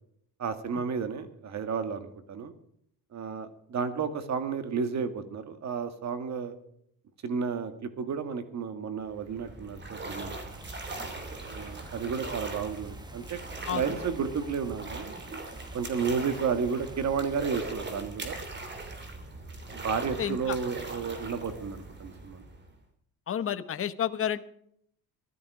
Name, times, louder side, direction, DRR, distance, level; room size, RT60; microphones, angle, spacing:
voice 1, 0.4-2.5 3.1-6.5 7.2-10.5 11.5-13.4 13.7-15.2 15.7-18.4 19.7-22.5, right 6 dB, 50° right, 9 dB, 2.1 m, -32 dB
sound 1, 9.1-22.8, right 2 dB, 30° right, 3.0 m, -40 dB
sound 2, 10.5-17.5, right 2 dB, 10° right, 1.4 m, -49 dB
voice 2, 20.2-20.6 23.3-24.4, left 9 dB, 35° left, 12 dB, 1.0 m, -30 dB
16.0 x 12.5 x 5.0 m, 0.69 s
cardioid pair, 120°, 36 cm